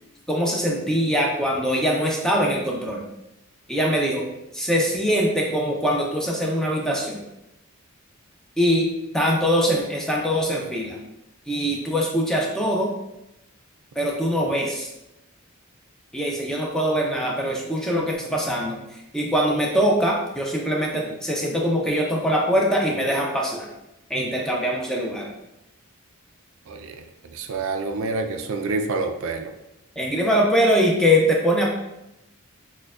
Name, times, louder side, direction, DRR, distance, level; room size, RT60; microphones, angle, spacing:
voice 1, 0.3-3.0 3.7-4.2 4.5-7.2 8.6-8.9 9.1-11.0 11.5-12.9 14.0-14.9 16.1-23.7 24.1-25.3 30.0-31.7, equal, 5° left, -2 dB, 0.4 m, -22 dB
voice 2, 27.3-29.5, right 3 dB, 60° right, 6 dB, 0.3 m, -27 dB
6.3 x 2.2 x 2.4 m, 0.91 s
head